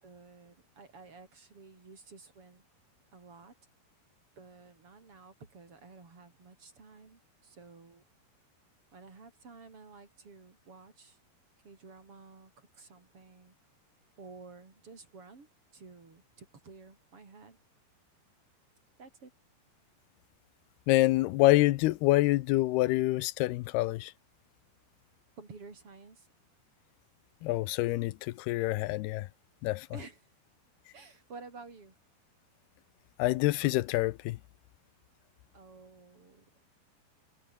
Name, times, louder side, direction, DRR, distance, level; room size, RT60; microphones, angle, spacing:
voice 1, 0.0-2.6 3.1-3.5 4.4-8.0 8.9-11.2 11.6-13.6 14.2-17.6 19.0-19.3 25.4-26.3 29.9-30.2 30.9-31.9 35.5-36.7, right 4 dB, 35° right, 5.3 m, -52 dB
voice 2, 20.9-24.1 27.4-29.3 29.6-29.9 33.2-34.4, left 18 dB, 80° left, 2.6 m, -26 dB
omnidirectional pair, 4.9 m